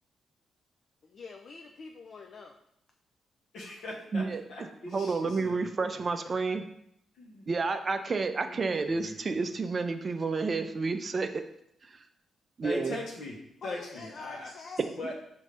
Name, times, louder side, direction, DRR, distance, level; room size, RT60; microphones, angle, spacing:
voice 1, 1.0-2.6 13.6-14.9, left 4 dB, 55° left, 3 dB, 0.4 m, -45 dB
voice 2, 3.5-5.7 7.1-7.4 8.4-9.5 12.6-13.4 13.6-14.5 14.9-15.2, left 2 dB, 75° left, -2 dB, 1.0 m, -40 dB
voice 3, 4.9-6.6 7.5-11.4 11.8-12.0 12.6-13.0, right 4 dB, 40° right, 8 dB, 0.4 m, -30 dB
5.2 x 2.7 x 3.3 m, 0.75 s
cardioid pair, 75°, 0 cm